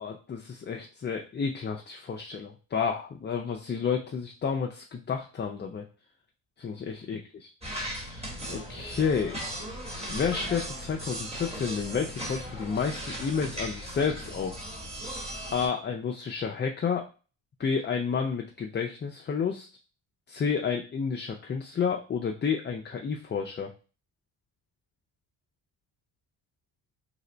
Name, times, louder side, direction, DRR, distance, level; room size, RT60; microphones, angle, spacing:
voice 1, 0.0-5.9 6.6-7.5 7.9-9.4 10.1-14.6 15.5-17.1 17.6-19.7 20.3-23.7, left 6 dB, 25° left, 2 dB, 0.3 m, -30 dB
sound 1, 7.6-15.7, equal, 15° right, 1.2 m, -37 dB
3.3 x 2.1 x 3.8 m, 0.35 s
cardioid pair, 75°, 48 cm